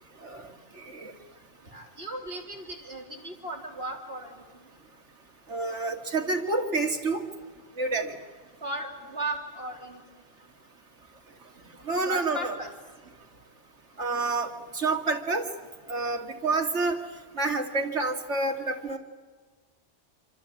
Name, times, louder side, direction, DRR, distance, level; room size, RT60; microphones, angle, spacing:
voice 1, 0.8-1.1 5.5-7.2 7.8-8.1 11.9-12.5 14.0-15.5 15.9-17.0 17.4-19.0, right 3 dB, 85° right, 4 dB, 2.6 m, -28 dB
voice 2, 1.6-4.7 8.6-10.0 12.1-12.7, right 1 dB, 55° right, 1 dB, 4.1 m, -36 dB
27.0 x 26.0 x 8.5 m, 1.4 s
omnidirectional pair, 1.2 m